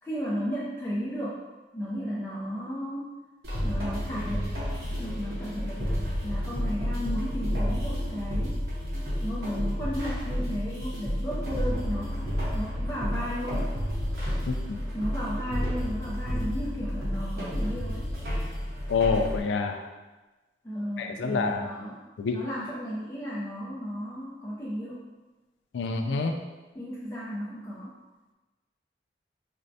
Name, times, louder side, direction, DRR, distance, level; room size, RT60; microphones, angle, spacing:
voice 1, 0.0-1.4 1.7-3.1 3.6-4.5 5.0-8.6 9.2-13.7 14.9-18.1 20.6-25.0 26.7-27.9, equal, 15° left, -7 dB, 0.4 m, -34 dB
sound 1, 3.4-19.4, equal, 65° right, 0.8 m, -30 dB
voice 2, 14.5-14.8 18.9-19.8 21.0-21.7 22.2-22.4 25.7-26.3, left 4 dB, 90° left, 5 dB, 0.3 m, -27 dB
4.3 x 2.0 x 2.6 m, 1.2 s
head